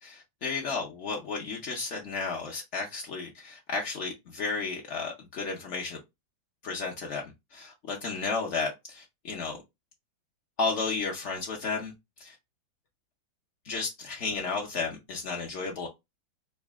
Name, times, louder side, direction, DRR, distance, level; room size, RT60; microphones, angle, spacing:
voice 1, 0.0-6.0 6.6-7.2 7.5-9.6 10.6-12.4 13.6-15.9, left 4 dB, 70° left, 0.6 m, -33 dB
3.9 x 2.1 x 3.4 m
omnidirectional pair, 2.1 m